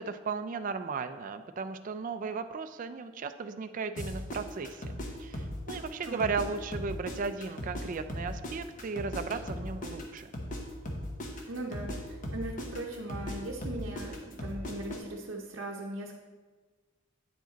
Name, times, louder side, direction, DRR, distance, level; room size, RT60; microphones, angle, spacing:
voice 1, 0.0-4.9 5.2-10.3, right 4 dB, 40° right, 9 dB, 0.3 m, -35 dB
sound 1, 4.0-6.5 6.7-10.6 10.9-15.0, left 1 dB, 40° left, 0.9 m, -37 dB
voice 2, 6.1-6.4 11.5-16.1, right 1 dB, 65° right, -2 dB, 0.7 m, -39 dB
9.1 x 5.0 x 3.9 m, 1.4 s
head